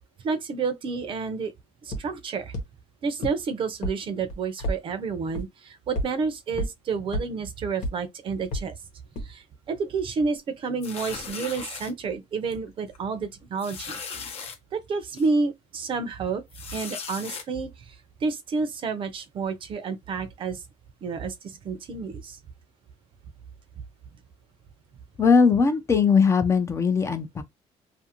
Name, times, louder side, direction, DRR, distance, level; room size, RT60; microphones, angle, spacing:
voice 1, 0.2-1.5 1.8-2.5 3.0-8.7 9.2-14.0 14.7-16.4 16.7-20.6 21.0-22.4, right 4 dB, 45° right, 0.6 m, -30 dB
sound 1, 1.9-2.0 2.5-2.6 3.2-3.3 3.8-3.9 4.3-4.8 5.3-5.4 6.0-6.1 6.6-6.7 7.1-7.2 7.8-7.9 8.5-8.6 9.2-9.3, equal, 85° left, 1.1 m, -27 dB
sound 2, 10.8-11.9 12.5-12.7 12.9-13.0 13.6-14.6 15.2-15.3 16.5-17.4, left 5 dB, 55° left, 0.7 m, -37 dB
voice 2, 25.2-27.4, left 5 dB, 25° left, 0.4 m, -20 dB
2.5 x 2.5 x 2.8 m
cardioid pair, 140°, 12 cm